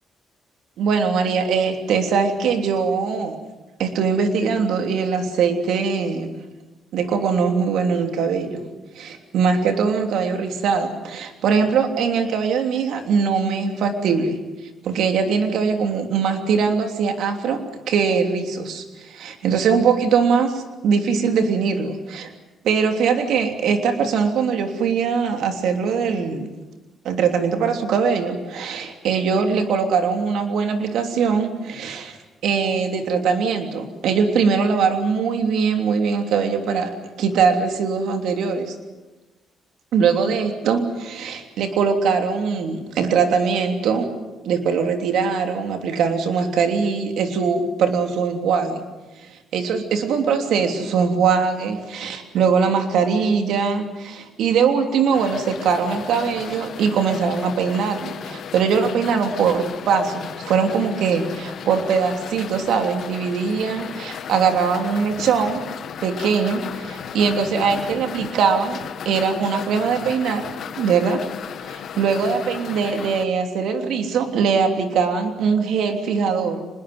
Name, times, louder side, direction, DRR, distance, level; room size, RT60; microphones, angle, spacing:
voice 1, 0.8-3.4 3.8-6.4 6.9-8.6 8.9-14.4 14.8-17.6 17.9-22.3 22.6-26.5 27.0-32.2 32.4-36.9 37.2-38.7 39.9-44.1 44.4-48.8 49.2-65.6 66.0-68.8 69.0-70.5 70.8-71.2 71.6-76.7, right 5 dB, 80° right, 5 dB, 3.2 m, -21 dB
sound 1, 55.1-73.2, left 8 dB, 65° left, 1.4 m, -35 dB
25.0 x 21.0 x 7.9 m, 1.1 s
cardioid pair, 90°, 0 cm